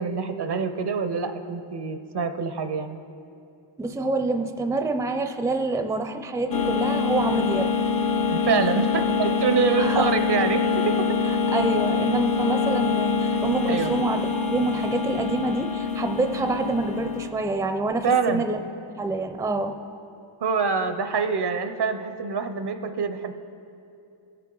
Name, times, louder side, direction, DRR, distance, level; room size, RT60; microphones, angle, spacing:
voice 1, 0.0-3.0 8.3-11.1 13.7-13.9 18.0-18.5 20.4-23.3, right 5 dB, 55° right, 9 dB, 0.6 m, -25 dB
voice 2, 3.8-7.7 9.8-10.1 11.2-18.6 19.0-19.8, right 3 dB, 5° right, 7 dB, 0.4 m, -27 dB
sound 1, 6.5-17.3, left 5 dB, 45° left, 0.6 m, -25 dB
15.5 x 6.7 x 3.8 m, 2.7 s
wide cardioid pair, 60°, 48 cm